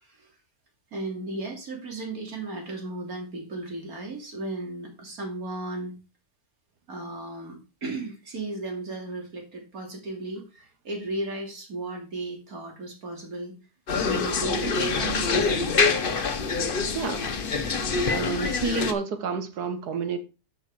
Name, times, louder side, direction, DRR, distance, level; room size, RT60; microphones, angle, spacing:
voice 1, 0.9-5.9 6.9-13.5 14.1-15.7, right 2 dB, 65° right, 3.1 m, -35 dB
sound 1, 13.9-18.9, left 4 dB, 40° left, 1.0 m, -25 dB
voice 2, 16.9-17.3 18.1-20.2, right 4 dB, 85° right, 1.8 m, -29 dB
10.5 x 5.5 x 4.8 m
omnidirectional pair, 1.6 m